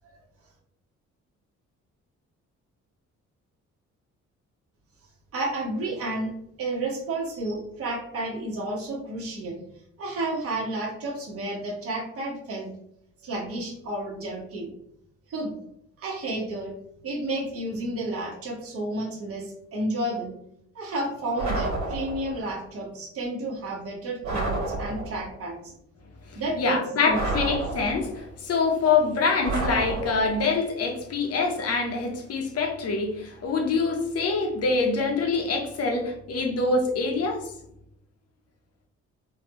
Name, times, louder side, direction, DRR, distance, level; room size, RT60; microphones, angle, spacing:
voice 1, 5.3-9.6 10.0-12.7 13.2-14.7 15.3-15.5 16.0-16.7 17.0-20.4 20.7-25.7 26.3-27.2, right 1 dB, 50° right, -4 dB, 1.2 m, -31 dB
sound 1, 21.4-22.4 24.2-25.3 27.1-28.3 29.4-30.5, right 2 dB, 70° right, 1.5 m, -30 dB
voice 2, 26.3-37.5, left 4 dB, 55° left, 3 dB, 0.8 m, -25 dB
3.7 x 2.3 x 2.9 m, 0.75 s
cardioid pair, 90°, 30 cm